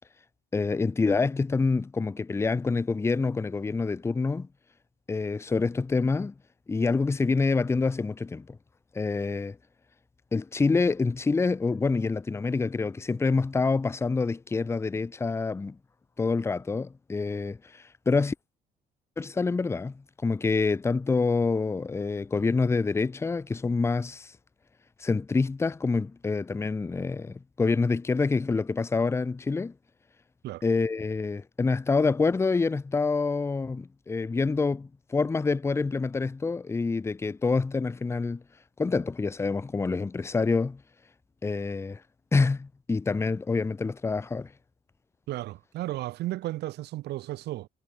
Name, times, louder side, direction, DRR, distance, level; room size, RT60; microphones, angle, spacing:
voice 1, 0.5-4.5 5.1-6.3 6.7-8.6 8.9-9.6 10.3-15.8 16.2-18.3 19.2-19.9 20.2-24.3 25.0-29.7 30.6-38.4 38.8-40.8 41.4-42.0 42.3-44.5, left 4 dB, 15° left, 0.6 m, -27 dB
voice 2, 45.3-47.7, right 16 dB, 80° right, 7.5 m, -34 dB
cardioid pair, 110°, 17 cm